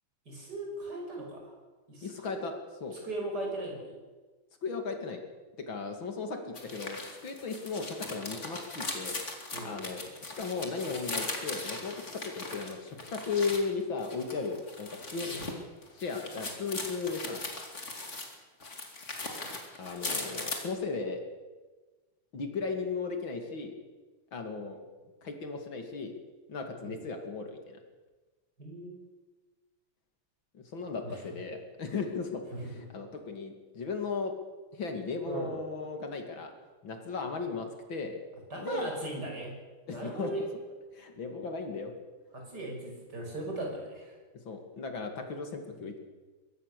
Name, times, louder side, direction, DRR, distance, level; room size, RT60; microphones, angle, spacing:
voice 1, 0.3-1.5 1.9-2.5 3.0-4.0 9.5-9.8 15.2-15.4 26.8-27.0 28.6-29.0 31.0-31.2 32.5-32.6 35.2-35.6 38.5-39.5 39.9-40.5 42.3-44.2, right 2 dB, 45° right, 0 dB, 6.3 m, -38 dB
voice 2, 2.0-2.5 2.8-3.0 4.6-5.2 5.6-9.2 9.6-15.3 15.9-17.4 19.8-21.2 22.3-23.7 24.3-24.8 25.2-26.1 26.5-27.8 30.5-34.3 34.7-36.5 36.8-38.2 38.6-38.9 39.9-40.3 40.9-41.9 44.4-46.0, left 4 dB, 60° left, 4 dB, 3.2 m, -36 dB
sound 1, 6.5-13.6 14.0-18.3 18.6-20.6, left 2 dB, 30° left, 3.0 m, -39 dB
23.0 x 17.5 x 6.9 m, 1.3 s
omnidirectional pair, 2.4 m